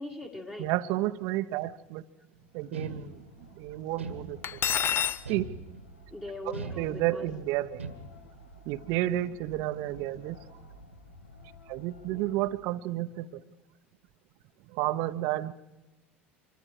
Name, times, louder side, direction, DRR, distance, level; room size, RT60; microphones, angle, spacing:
voice 1, 0.0-0.7 6.1-7.3 12.1-12.2, left 2 dB, 15° left, -1 dB, 2.1 m, -41 dB
voice 2, 0.6-2.0 2.5-3.2 3.6-4.6 5.3-5.5 6.8-7.8 8.7-10.4 11.7-13.4 14.7-15.5, right 15 dB, 55° right, 13 dB, 0.9 m, -31 dB
sound 1, 2.2-12.6, equal, 85° left, 1.5 m, -53 dB
sound 2, 2.7-3.5 4.0-4.7 5.3-6.0 6.5-7.3 7.8-8.4, right 4 dB, 85° right, 1.8 m, -40 dB
Cutlery silverware, 4.4-5.2, left 9 dB, 35° left, 0.7 m, -27 dB
25.5 x 23.5 x 5.0 m, 1.1 s
figure-of-eight pair, 75°, 7 cm